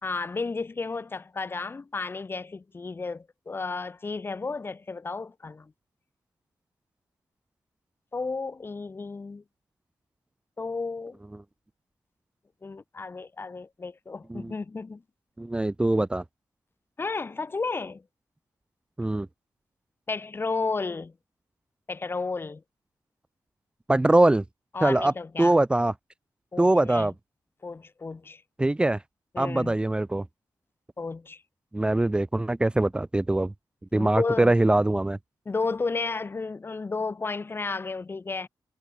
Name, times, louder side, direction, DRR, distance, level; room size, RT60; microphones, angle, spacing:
voice 1, 0.0-5.7 8.1-9.4 10.6-11.2 12.6-15.0 17.0-18.0 20.1-21.1 21.9-22.6 24.7-25.5 26.5-27.1 27.6-28.4 29.3-29.7 31.0-31.4 33.9-34.5 35.5-38.5, left 4 dB, 30° left, 2.5 m, -32 dB
voice 2, 15.4-16.2 19.0-19.3 23.9-24.4 24.8-25.1 25.4-25.9 26.6-27.1 28.6-29.0 29.4-30.2 31.7-33.5 33.9-35.2, right 2 dB, 10° right, 1.3 m, -22 dB
wide cardioid pair, 145°, 8 cm